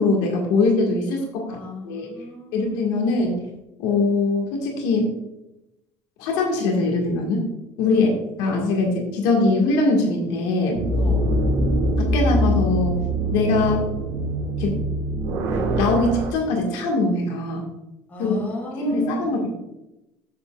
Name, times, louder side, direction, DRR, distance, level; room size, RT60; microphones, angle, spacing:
voice 1, 0.0-1.6 1.8-2.1 2.5-3.4 3.8-5.2 6.2-7.5 7.8-8.1 8.4-10.9 12.0-13.0 13.3-13.9 14.6-14.8 15.7-17.7 18.2-18.4 18.8-19.5, left 3 dB, 85° left, 1 dB, 1.8 m, -22 dB
voice 2, 1.5-3.1 7.8-8.1 10.9-11.3 18.1-19.2, left 3 dB, 20° left, -2 dB, 3.1 m, -35 dB
sound 1, 10.8-16.3, right 1 dB, 85° right, 2.3 m, -23 dB
9.4 x 8.0 x 2.4 m, 0.93 s
cardioid pair, 155°, 8 cm